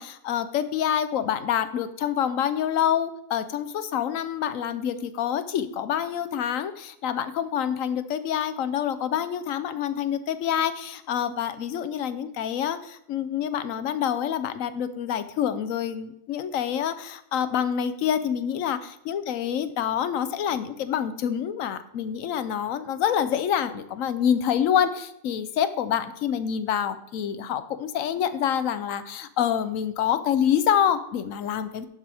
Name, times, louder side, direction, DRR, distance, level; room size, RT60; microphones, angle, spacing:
voice 1, 0.0-31.9, left 9 dB, 80° left, 12 dB, 1.1 m, -27 dB
11.5 x 7.6 x 3.5 m, 0.77 s
omnidirectional pair, 1.4 m